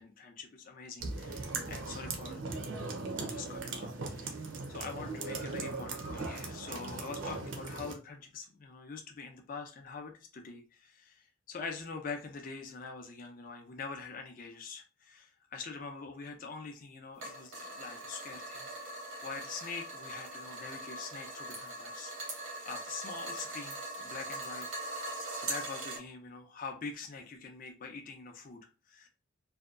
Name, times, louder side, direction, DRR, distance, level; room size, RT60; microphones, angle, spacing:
voice 1, 0.0-2.5 2.9-4.4 4.7-18.7 19.2-24.7 25.4-28.6 28.9-29.1, left 4 dB, 40° left, 0.4 m, -44 dB
sound 1, 1.0-7.9, right 3 dB, 65° right, 0.5 m, -39 dB
sound 2, 17.2-26.0, right 1 dB, 90° right, 0.9 m, -41 dB
2.7 x 2.2 x 2.3 m
head